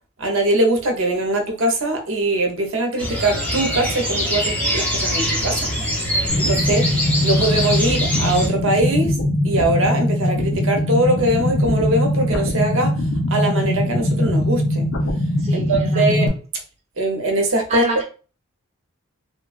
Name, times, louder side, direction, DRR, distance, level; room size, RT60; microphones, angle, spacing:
voice 1, 0.2-5.7 6.4-6.9 7.2-9.2 9.4-13.0 13.3-14.9 15.5-16.3 17.0-17.8, right 1 dB, 65° right, 0.7 m, -21 dB
sound 1, 3.0-8.5, equal, 5° left, 0.6 m, -23 dB
sound 2, 6.3-16.3, left 1 dB, 50° left, 0.6 m, -21 dB
voice 2, 15.4-16.3 17.7-18.0, right 2 dB, 30° right, 0.9 m, -26 dB
3.1 x 2.2 x 2.4 m
head